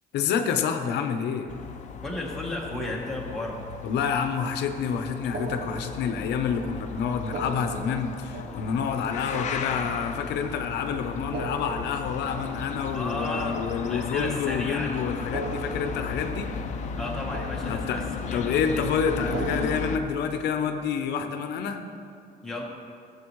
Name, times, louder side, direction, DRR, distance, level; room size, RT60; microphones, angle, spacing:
voice 1, 0.1-1.5 3.8-16.5 17.7-18.0 18.3-21.8, left 6 dB, 90° left, 6 dB, 0.7 m, -28 dB
sound 1, 1.5-20.0, left 5 dB, 45° left, 0.5 m, -35 dB
voice 2, 2.0-3.6 12.9-15.0 17.0-18.9 22.4-22.6, left 1 dB, ahead, -3 dB, 1.2 m, -34 dB
sound 2, 5.3-6.6 7.2-10.5 11.2-14.5 15.2-17.1 17.3-18.4 19.2-21.0, right 4 dB, 65° right, 0.9 m, -40 dB
14.5 x 7.2 x 3.1 m, 2.4 s
cardioid pair, 170°, 17 cm